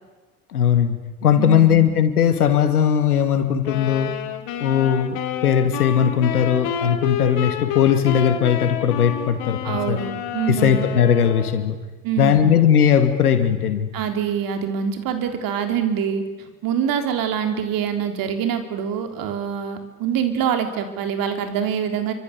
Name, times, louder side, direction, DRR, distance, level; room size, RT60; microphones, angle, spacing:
voice 1, 0.5-4.1 4.6-9.6 9.9-10.0 10.5-11.8 12.2-13.9, left 8 dB, 80° left, 8 dB, 2.5 m, -18 dB
voice 2, 1.4-1.9 9.6-10.9 12.0-12.5 13.9-22.1, right 8 dB, 50° right, 6 dB, 3.9 m, -25 dB
sound 1, 3.6-11.6, left 9 dB, 55° left, 3.1 m, -29 dB
29.0 x 25.0 x 6.9 m, 1.3 s
figure-of-eight pair, 70°, 45 cm